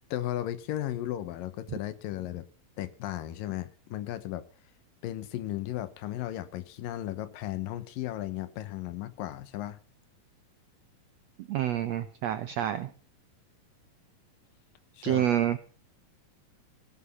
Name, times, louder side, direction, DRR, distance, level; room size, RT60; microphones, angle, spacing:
voice 1, 0.1-2.5 2.8-4.4 5.0-9.8 14.9-15.3, left 13 dB, 80° left, 2.7 m, -35 dB
voice 2, 11.5-12.9 15.0-15.6, right 11 dB, 80° right, 1.5 m, -28 dB
17.5 x 9.9 x 5.5 m
omnidirectional pair, 4.1 m